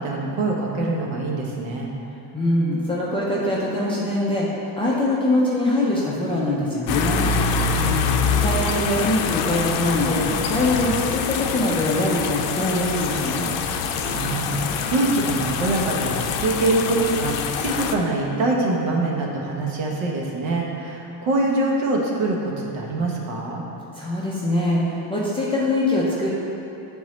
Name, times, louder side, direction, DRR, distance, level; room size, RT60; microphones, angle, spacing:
voice 1, 0.0-1.9 7.7-8.4 14.0-23.6, right 2 dB, 75° right, -1 dB, 1.1 m, -24 dB
voice 2, 2.3-7.3 8.4-10.2 10.5-13.5 23.9-26.3, left 1 dB, 15° left, -7 dB, 0.3 m, -23 dB
sound 1, 6.9-17.9, left 5 dB, 75° left, 0.5 m, -25 dB
8.4 x 3.7 x 3.1 m, 3.0 s
cardioid pair, 160°, 47 cm